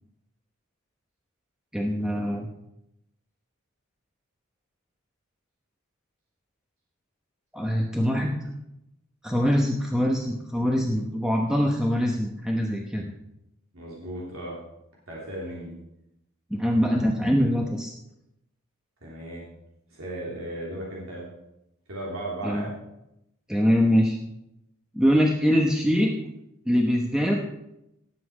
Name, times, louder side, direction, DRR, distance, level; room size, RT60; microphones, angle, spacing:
voice 1, 1.7-2.5 7.5-8.5 9.2-13.1 16.5-17.9 22.4-22.7 23.5-24.2 24.9-26.3 26.7-27.4, equal, 5° right, 0 dB, 1.0 m, -23 dB
voice 2, 13.7-14.6 15.1-15.7 19.0-19.4 19.9-21.3 21.9-22.7, right 1 dB, 75° right, -4 dB, 3.3 m, -35 dB
18.0 x 7.8 x 4.9 m, 0.85 s
head